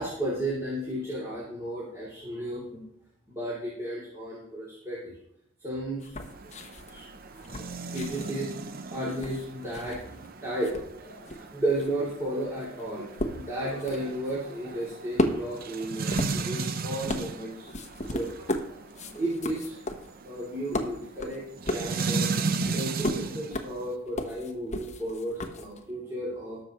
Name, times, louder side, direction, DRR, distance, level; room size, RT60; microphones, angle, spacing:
voice 1, 0.0-2.8 3.3-5.1 5.6-6.1 6.4-8.5 8.9-13.1 13.3-17.7 18.1-19.8 20.2-22.3 22.7-26.6, right 1 dB, 15° right, -8 dB, 3.0 m, -34 dB
sound 1, 6.0-10.3 10.5-25.9, left 1 dB, 35° left, 1.1 m, -35 dB
sound 2, 6.2-23.9, right 4 dB, 45° right, 0.6 m, -36 dB
20.0 x 6.8 x 3.1 m, 0.72 s
head